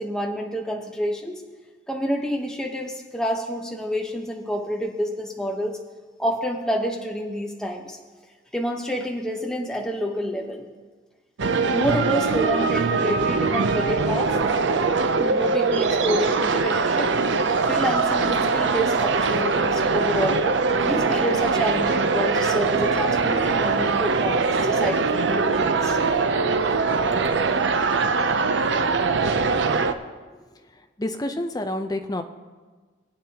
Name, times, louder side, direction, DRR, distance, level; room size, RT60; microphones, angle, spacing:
voice 1, 0.0-1.3 1.9-5.8 6.2-8.0 8.5-10.7 11.7-14.3 15.2-17.1 17.7-20.5 20.8-26.0, equal, 5° left, 1 dB, 1.0 m, -28 dB
sound 1, 11.4-29.9, right 4 dB, 70° right, 0.6 m, -22 dB
voice 2, 31.0-32.2, left 1 dB, 20° left, 5 dB, 0.6 m, -28 dB
20.0 x 8.4 x 2.9 m, 1.4 s
head